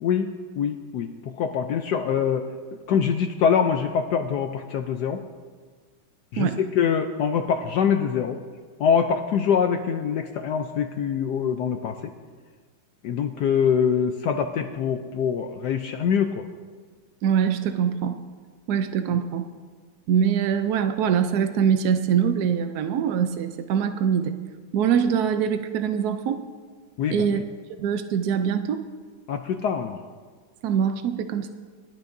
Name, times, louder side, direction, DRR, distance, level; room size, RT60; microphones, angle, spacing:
voice 1, 0.0-2.5 2.9-5.2 6.3-8.4 8.8-12.1 13.0-16.5 27.0-27.4 29.3-30.0, left 7 dB, 70° left, 6 dB, 1.0 m, -24 dB
voice 2, 17.2-18.2 18.7-19.4 20.1-24.4 24.7-26.4 27.1-27.4 27.8-28.8 30.6-31.5, right 8 dB, 75° right, 8 dB, 0.9 m, -23 dB
19.5 x 12.0 x 2.6 m, 1.5 s
omnidirectional pair, 2.3 m